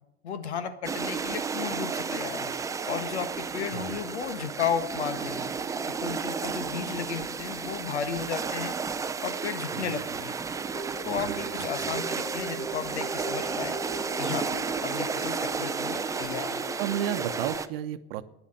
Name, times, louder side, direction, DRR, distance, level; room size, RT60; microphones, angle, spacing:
voice 1, 0.2-2.5 2.9-5.5 6.0-8.7 9.2-10.4 11.0-13.8 14.2-14.5 14.8-16.7, left 7 dB, 80° left, 10 dB, 1.5 m, -34 dB
sound 1, 0.8-17.7, right 5 dB, 10° right, 0.4 m, -33 dB
sound 2, 10.7-17.6, right 1 dB, 20° left, 1.4 m, -40 dB
voice 2, 11.1-12.0 16.8-18.2, right 11 dB, 60° right, 12 dB, 0.9 m, -33 dB
9.9 x 7.4 x 8.8 m, 0.83 s
hypercardioid pair, 105°, 33 cm